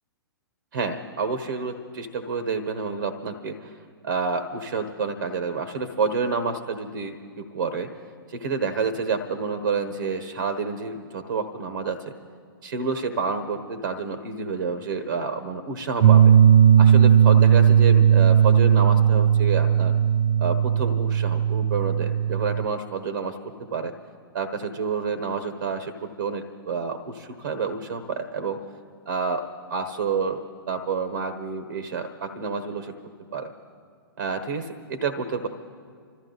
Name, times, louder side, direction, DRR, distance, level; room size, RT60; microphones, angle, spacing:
voice 1, 0.7-3.7 4.0-7.9 8.3-12.1 12.6-16.3 16.8-19.9 20.4-23.4 23.7-23.9 24.3-28.6 29.1-29.4 29.7-30.4 30.7-32.9 33.3-33.5 34.2-35.5, right 5 dB, 65° right, 9 dB, 1.3 m, -29 dB
sound 1, 16.0-22.7, right 9 dB, 50° right, 0.5 m, -17 dB
27.0 x 13.5 x 4.0 m, 2.1 s
figure-of-eight pair, 115°, 12 cm